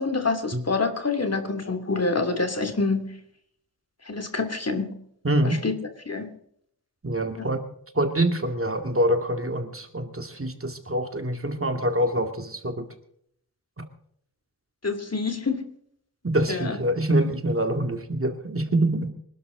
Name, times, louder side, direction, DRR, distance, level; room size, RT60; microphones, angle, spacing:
voice 1, 0.0-3.1 4.1-5.0 5.4-5.7 6.1-6.3 7.4-7.5 14.8-15.6 16.5-16.8, left 3 dB, 40° left, 7 dB, 2.8 m, -26 dB
voice 2, 5.2-5.6 7.0-7.6 7.9-12.9 13.8-13.9 16.2-19.1, right 1 dB, 35° right, 6 dB, 2.3 m, -25 dB
26.0 x 12.0 x 3.9 m, 0.67 s
wide cardioid pair, 95°, 38 cm